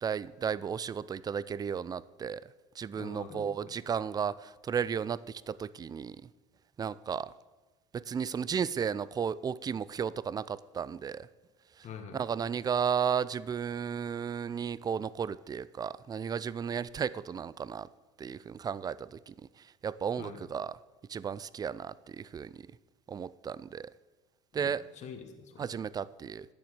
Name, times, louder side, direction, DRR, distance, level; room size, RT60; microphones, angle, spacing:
voice 1, 0.0-2.4 2.8-4.3 4.7-5.2 5.5-6.2 6.8-7.3 7.9-11.3 12.1-17.9 18.2-19.3 19.8-20.7 21.1-22.5 23.1-23.9 24.5-24.8 25.6-26.5, right 7 dB, 25° right, 0.4 m, -34 dB
voice 2, 2.9-3.8 11.8-12.3 20.2-20.4 24.5-25.8, left 6 dB, 45° left, 1.5 m, -46 dB
9.8 x 7.0 x 7.7 m
hypercardioid pair, 85°, 16 cm